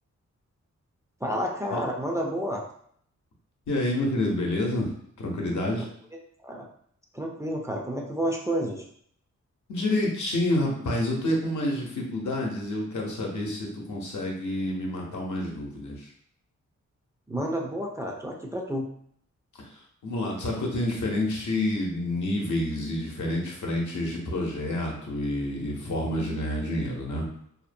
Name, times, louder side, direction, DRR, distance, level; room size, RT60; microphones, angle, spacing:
voice 1, 1.2-2.6 6.4-6.6 7.1-8.8 17.3-18.9, equal, 10° right, -1 dB, 0.3 m, -30 dB
voice 2, 3.7-4.9 5.2-5.9 9.7-16.1 19.5-27.3, left 1 dB, 75° left, -1 dB, 0.7 m, -28 dB
2.6 x 2.1 x 2.5 m, 0.64 s
wide cardioid pair, 100°, 30 cm